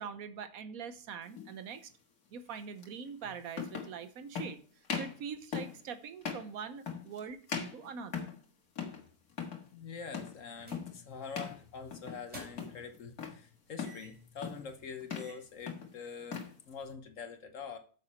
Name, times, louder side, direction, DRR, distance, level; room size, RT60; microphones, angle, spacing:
voice 1, 0.0-1.9 2.3-4.6 4.9-8.3, right 6 dB, 70° right, 11 dB, 1.2 m, -43 dB
boots on floor, 1.3-1.5 2.8-2.9 3.5-4.0 4.3-4.5 4.8-5.2 5.5-5.8 6.2-6.5 6.9-7.2 7.5-8.4 8.8-9.0 9.3-9.6 10.1-10.4 10.7-11.0 11.3-11.6 11.9-12.3 12.6-13.4 13.8-14.0 14.4-14.7 15.0-15.4 15.7-16.5, left 6 dB, 85° left, 2.1 m, -39 dB
voice 2, 9.7-17.8, left 5 dB, 60° left, 7 dB, 1.4 m, -45 dB
sound 1, 10.6-10.9 11.2-11.4 12.1-12.9 13.8-14.3 14.7-14.8 15.1-15.5, left 1 dB, 25° right, 3.7 m, -51 dB
9.0 x 6.9 x 4.4 m, 0.42 s
omnidirectional pair, 1.6 m